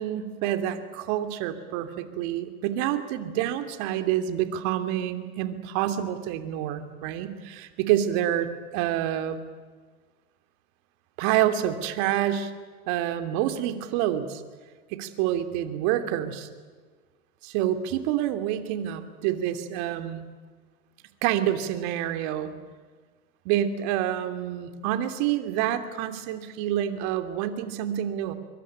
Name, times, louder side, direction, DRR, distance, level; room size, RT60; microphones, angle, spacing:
voice 1, 0.0-9.4 11.2-12.5 12.9-14.4 14.9-16.5 17.4-20.3 21.2-22.5 23.4-28.3, right 11 dB, 55° right, 9 dB, 3.0 m, -27 dB
24.5 x 24.0 x 8.9 m, 1.5 s
hypercardioid pair, 105°, 44 cm